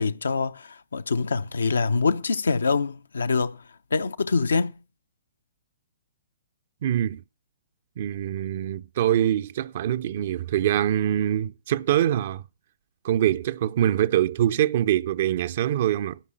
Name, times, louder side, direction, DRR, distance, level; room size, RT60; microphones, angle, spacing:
voice 1, 0.0-4.7, left 4 dB, 75° left, 0.7 m, -25 dB
voice 2, 6.8-7.2 8.0-12.4 13.0-16.2, right 11 dB, 50° right, 0.5 m, -24 dB
13.5 x 5.5 x 7.7 m
figure-of-eight pair, 125°, 0 cm